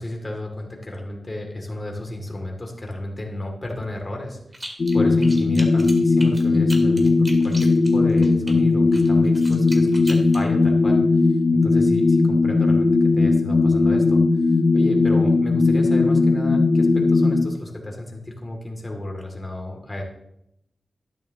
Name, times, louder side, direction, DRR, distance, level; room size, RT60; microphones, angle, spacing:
voice 1, 0.0-4.4 4.9-20.0, left 1 dB, 25° left, 1 dB, 2.6 m, -33 dB
sound 1, 4.5-5.0 5.2-8.5 8.9-10.4, right 1 dB, 20° right, 2.0 m, -37 dB
sound 2, 4.8-17.4, left 3 dB, 50° left, 0.7 m, -18 dB
12.5 x 10.5 x 3.0 m, 0.80 s
wide cardioid pair, 80°, 0 cm